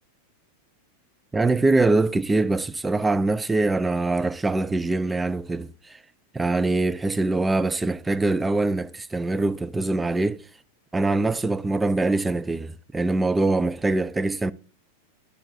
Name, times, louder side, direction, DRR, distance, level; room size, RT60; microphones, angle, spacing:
voice 1, 1.3-6.0 6.3-10.4 10.9-14.5, right 2 dB, 10° right, 0.4 m, -23 dB
10.5 x 6.6 x 2.6 m
figure-of-eight pair, 90°, 0 cm